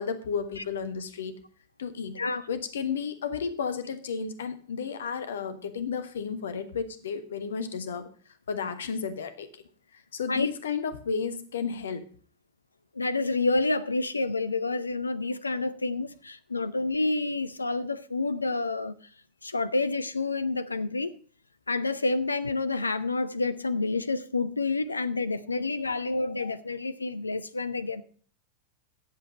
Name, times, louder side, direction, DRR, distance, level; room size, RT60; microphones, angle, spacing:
voice 1, 0.0-1.4 1.8-2.2 2.5-8.1 8.5-9.6 10.1-12.1, left 6 dB, 65° left, 1.3 m, -33 dB
voice 2, 2.1-2.5 10.3-10.5 13.0-18.9 19.4-21.1 21.7-28.0, left 3 dB, 80° left, 0.6 m, -28 dB
11.0 x 7.8 x 5.2 m
figure-of-eight pair, 90°, 0 cm